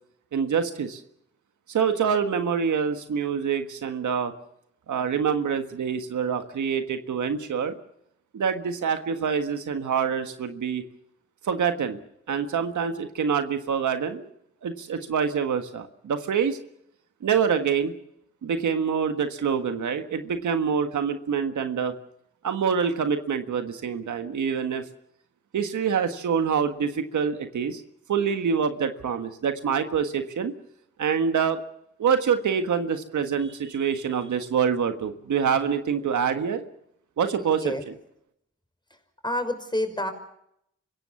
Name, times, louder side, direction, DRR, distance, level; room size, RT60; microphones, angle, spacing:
voice 1, 0.3-1.0 1.7-4.3 4.9-7.7 8.3-10.8 11.4-12.0 12.3-14.3 14.6-16.6 17.2-17.9 18.4-22.0 22.4-24.8 25.5-27.8 28.1-30.5 31.0-31.6 32.0-36.6 37.2-37.7, right 7 dB, 90° right, 8 dB, 1.6 m, -26 dB
voice 2, 37.4-37.8 39.2-40.1, left 1 dB, 15° left, 7 dB, 5.6 m, -28 dB
26.0 x 16.5 x 7.1 m, 0.76 s
cardioid pair, 45°, 29 cm